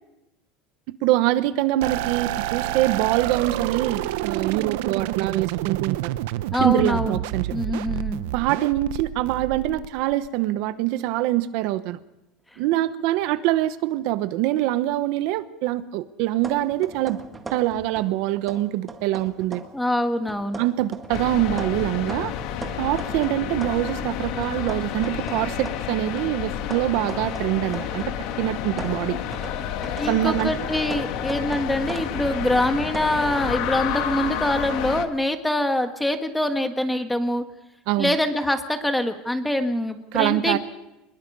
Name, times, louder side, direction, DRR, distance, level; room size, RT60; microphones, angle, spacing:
voice 1, 1.0-6.1 6.6-7.5 8.3-12.0 12.6-17.2 17.5-19.6 20.6-22.3 22.8-29.2 30.1-30.5 37.9-38.1 40.1-40.6, right 15 dB, 60° right, 12 dB, 1.0 m, -24 dB
sound 1, 1.8-10.3, right 15 dB, 85° right, 0.8 m, -29 dB
voice 2, 6.5-7.2 7.5-8.2 12.5-12.6 19.7-20.6 30.0-37.4 38.0-40.6, left 1 dB, 5° left, 7 dB, 1.4 m, -24 dB
sound 2, 16.4-18.2 18.5-19.8 20.3-24.1 24.4-28.2 28.5-33.1, right 4 dB, 15° right, 1.8 m, -39 dB
sound 3, 21.1-35.1, left 9 dB, 55° left, 1.7 m, -30 dB
24.0 x 21.0 x 5.4 m, 0.93 s
cardioid pair, 160°, 0 cm